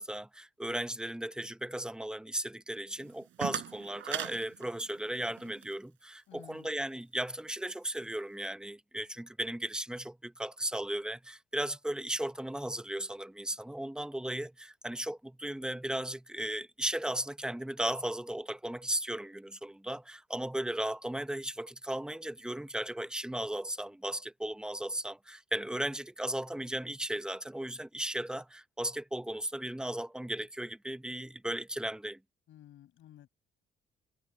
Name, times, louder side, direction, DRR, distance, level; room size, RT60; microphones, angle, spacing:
voice 1, 0.0-32.2, right 1 dB, 5° right, 0.9 m, -36 dB
sound 1, 3.0-5.8, right 11 dB, 75° right, 4.7 m, -40 dB
voice 2, 6.3-6.7 32.5-33.3, left 12 dB, 80° left, 5.8 m, -53 dB
cardioid pair, 90°, 20 cm